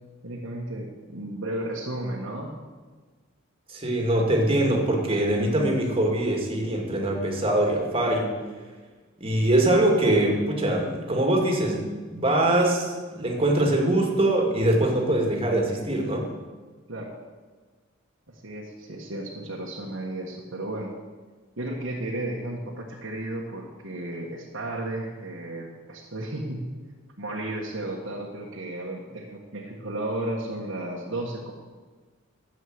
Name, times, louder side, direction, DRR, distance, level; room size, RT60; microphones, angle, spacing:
voice 1, 0.2-2.5 16.9-17.1 18.3-20.9 21.6-26.7 27.2-31.5, right 1 dB, 65° right, -3 dB, 1.6 m, -33 dB
voice 2, 3.7-8.3 9.2-16.3, right 1 dB, 25° right, 0 dB, 2.3 m, -23 dB
13.0 x 7.6 x 8.0 m, 1.4 s
head